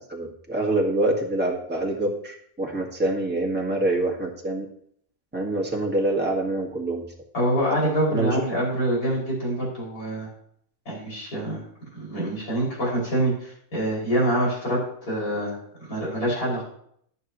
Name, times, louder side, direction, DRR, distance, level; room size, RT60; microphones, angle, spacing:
voice 1, 0.0-4.7 5.3-7.1 8.1-8.4, right 2 dB, 5° right, -1 dB, 1.8 m, -25 dB
voice 2, 7.3-10.3 10.8-11.6 11.9-14.8 15.1-15.5 15.9-16.6, right 1 dB, 70° left, -6 dB, 6.8 m, -25 dB
20.0 x 7.7 x 3.1 m, 0.67 s
omnidirectional pair, 1.7 m